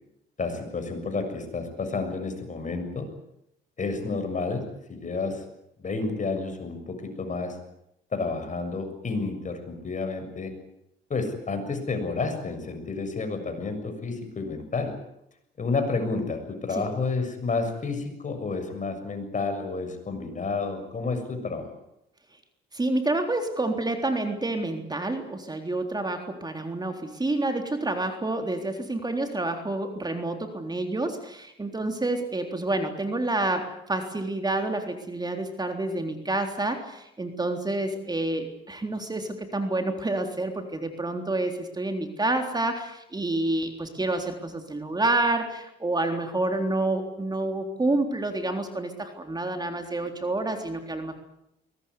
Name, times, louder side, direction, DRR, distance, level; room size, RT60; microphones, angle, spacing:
voice 1, 0.4-3.1 3.8-5.4 5.8-7.6 8.1-10.5 11.1-14.9 15.6-21.8, left 3 dB, 40° left, 7 dB, 7.0 m, -30 dB
voice 2, 22.7-51.1, right 2 dB, 20° right, 5 dB, 3.7 m, -28 dB
22.5 x 19.5 x 9.8 m, 0.79 s
cardioid pair, 90°, 20 cm